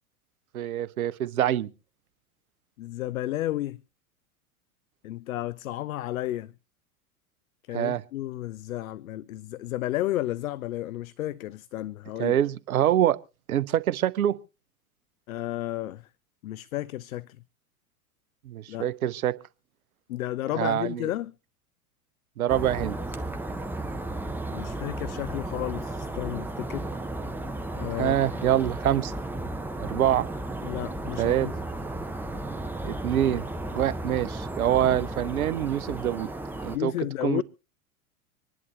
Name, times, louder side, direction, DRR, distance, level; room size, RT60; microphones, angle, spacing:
voice 1, 0.5-1.7 7.7-8.0 12.2-13.2 13.5-14.4 18.5-19.3 20.5-21.1 22.4-23.0 28.0-29.1 29.8-30.3 31.2-31.5 32.8-33.4 33.7-36.3 36.6-36.9 37.2-37.4, right 11 dB, 70° right, 0.8 m, -25 dB
voice 2, 2.8-3.8 5.0-6.5 7.7-12.4 15.3-16.1 16.4-17.4 18.7-18.9 20.1-21.3 24.5-26.9 27.7-28.2 30.6-31.5 36.7-37.4, left 14 dB, 65° left, 0.6 m, -32 dB
sound 1, 22.5-36.8, right 2 dB, 5° right, 1.1 m, -34 dB
26.0 x 11.0 x 3.1 m
figure-of-eight pair, 85°, 45 cm